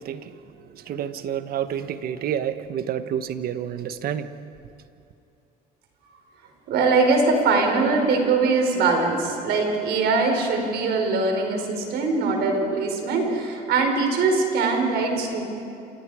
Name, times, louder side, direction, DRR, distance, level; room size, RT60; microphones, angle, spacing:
voice 1, 0.0-4.3, right 9 dB, 60° right, 1.2 m, -29 dB
voice 2, 6.7-15.4, right 3 dB, 80° right, 5.0 m, -22 dB
28.0 x 27.5 x 5.0 m
cardioid pair, 110°, 17 cm